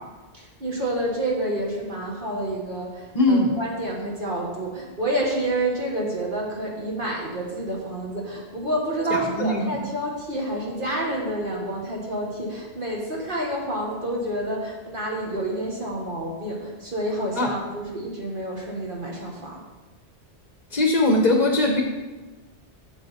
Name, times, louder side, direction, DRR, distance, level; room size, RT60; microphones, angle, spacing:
voice 1, 0.3-19.6, right 1 dB, 50° right, -2 dB, 1.6 m, -29 dB
voice 2, 3.1-3.5 9.1-9.6 17.4-17.5 20.7-21.8, left 2 dB, 40° left, 2 dB, 0.9 m, -20 dB
8.8 x 7.4 x 4.1 m, 1.2 s
omnidirectional pair, 1.2 m